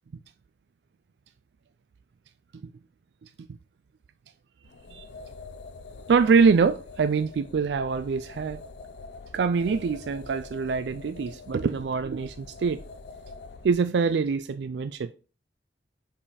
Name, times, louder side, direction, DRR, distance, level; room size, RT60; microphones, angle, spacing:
sound 1, 4.6-13.8, left 3 dB, 75° left, 0.5 m, -45 dB
voice 1, 6.1-8.6 9.3-12.8 13.6-15.1, right 5 dB, 75° right, 0.4 m, -24 dB
5.4 x 5.1 x 4.1 m
head